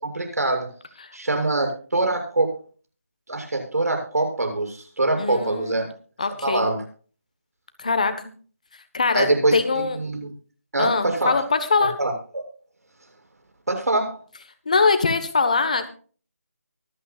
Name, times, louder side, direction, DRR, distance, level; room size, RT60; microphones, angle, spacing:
voice 1, 0.0-0.7 1.1-2.6 3.3-5.9 6.4-6.8 9.1-10.3 10.7-11.4 11.8-12.1 13.7-14.2, right 2 dB, 85° right, 4 dB, 7.1 m, -24 dB
voice 2, 5.2-5.9 6.2-6.7 7.8-8.1 8.9-10.0 10.8-11.4 11.7-11.9 14.7-15.9, left 4 dB, 30° left, 10 dB, 1.2 m, -22 dB
24.0 x 9.1 x 2.4 m, 0.40 s
figure-of-eight pair, 180°, 8 cm